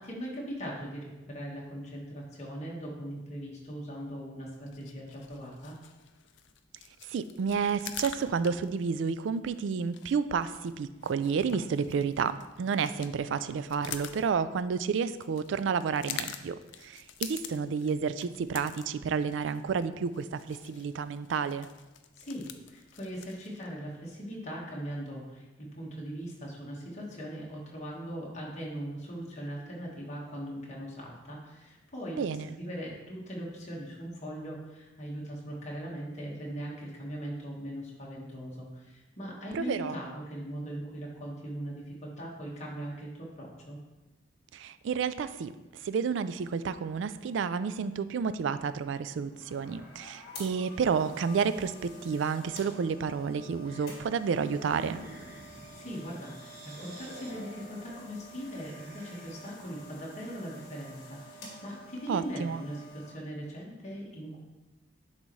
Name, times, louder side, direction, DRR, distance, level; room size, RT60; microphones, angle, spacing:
voice 1, 0.0-5.8 22.1-32.2 32.5-43.8 55.5-64.4, equal, 35° left, -4 dB, 1.5 m, -40 dB
sound 1, 4.5-23.7, left 9 dB, 70° left, 0.4 m, -46 dB
voice 2, 7.1-21.7 32.2-32.6 39.5-40.0 44.5-45.5 45.8-55.0 62.1-62.6, right 6 dB, 70° right, 14 dB, 0.3 m, -30 dB
sound 2, 49.1-63.1, equal, 55° left, 1.7 m, -49 dB
sound 3, 54.2-59.7, right 1 dB, 50° right, 1.1 m, -49 dB
10.5 x 4.0 x 3.2 m, 1.1 s
head